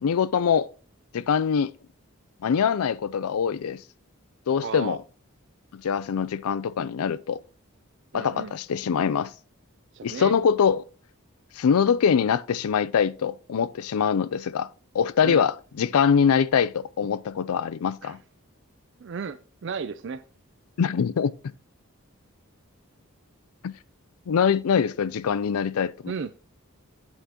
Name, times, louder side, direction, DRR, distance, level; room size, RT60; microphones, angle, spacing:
voice 1, 0.0-0.7 1.1-1.7 2.4-3.8 4.5-5.0 5.7-7.4 8.1-9.3 10.0-10.8 11.6-14.7 14.9-18.2 20.8-21.5 23.6-23.7 24.3-26.1, left 7 dB, 85° left, 0.4 m, -23 dB
voice 2, 4.6-5.0 8.1-8.5 9.9-10.3 15.2-15.4 18.0-18.2 19.0-20.2 26.1-26.4, right 5 dB, 55° right, 0.4 m, -34 dB
8.2 x 8.0 x 2.9 m
head